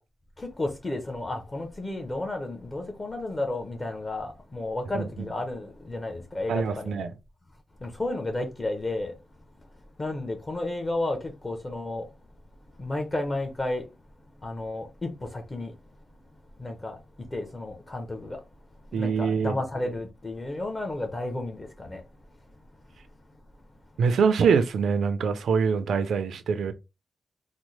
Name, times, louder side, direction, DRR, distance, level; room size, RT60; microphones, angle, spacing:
voice 1, 0.4-7.0 7.8-9.2 10.0-12.1 12.8-13.9 14.4-15.7 16.6-18.4 18.9-22.0, left 2 dB, 25° left, 0.8 m, -32 dB
voice 2, 4.9-5.3 6.5-7.1 18.9-19.6 24.0-26.7, right 6 dB, 90° right, 0.5 m, -24 dB
4.1 x 2.1 x 3.1 m
wide cardioid pair, 120°, 0 cm